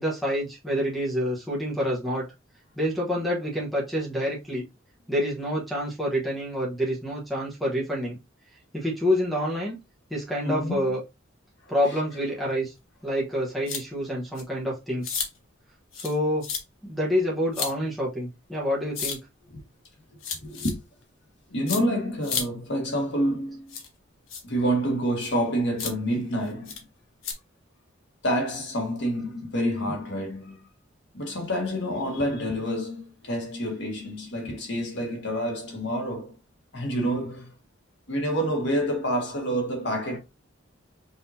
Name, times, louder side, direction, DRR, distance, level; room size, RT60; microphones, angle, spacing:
voice 1, 0.0-2.3 2.8-4.6 5.1-8.2 8.7-9.8 10.1-11.0 11.7-12.7 13.0-15.2 15.9-16.5 16.8-19.2, equal, ahead, 1.1 m, -27 dB
voice 2, 10.4-10.9 11.6-12.0 19.5-19.6 20.4-20.8 21.5-23.7 24.4-26.8 28.2-30.7 31.1-36.3 36.7-37.5 38.1-40.2, equal, 60° left, 1.7 m, -28 dB
sound 1, 13.7-13.8 14.4-14.5 15.0-15.3 15.9-16.2 16.4-16.6 17.5-17.7 18.9-19.2 20.2-20.7 21.7-21.8 22.2-22.4 23.7-23.9 24.3-24.4 25.2-25.3 25.8-25.9 26.7-26.8 27.2-27.3, left 6 dB, 75° left, 1.2 m, -31 dB
5.5 x 2.8 x 2.8 m
head